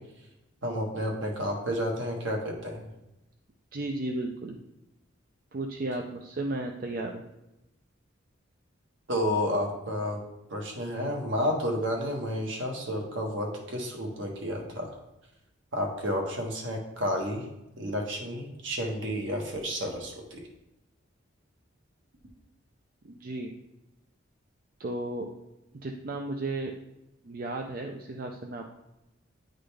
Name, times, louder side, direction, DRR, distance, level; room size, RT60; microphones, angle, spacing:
voice 1, 0.6-2.9 9.1-10.2 10.5-14.9 15.7-17.4 17.8-20.4, equal, 65° right, 0 dB, 1.3 m, -31 dB
voice 2, 3.7-4.6 5.5-7.2 23.0-23.5 24.8-25.3 25.8-26.7 27.2-28.7, right 2 dB, 45° right, 2 dB, 0.5 m, -34 dB
9.5 x 3.9 x 3.3 m, 0.93 s
head